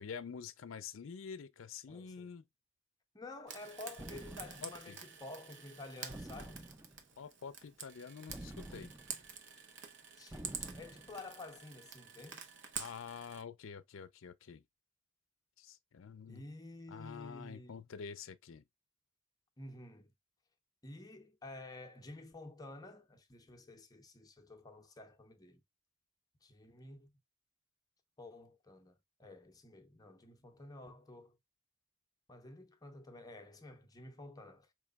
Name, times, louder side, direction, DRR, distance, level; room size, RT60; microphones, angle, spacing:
voice 1, 0.0-2.4 4.6-5.0 7.2-8.9 12.8-14.6 15.6-16.4 16.9-18.6, left 6 dB, 65° left, 0.4 m, -47 dB
voice 2, 1.9-2.3 3.1-6.6 10.2-12.4 16.3-17.8 19.6-20.1 20.8-25.6 26.4-27.1 28.2-31.4 32.3-34.7, left 2 dB, 20° left, 0.7 m, -51 dB
Frying (food), 3.5-13.4, right 7 dB, 60° right, 0.8 m, -48 dB
sound 1, 4.0-4.9 6.1-7.1 8.3-9.3 10.3-11.2, right 1 dB, 10° right, 0.3 m, -49 dB
5.0 x 3.1 x 2.2 m
head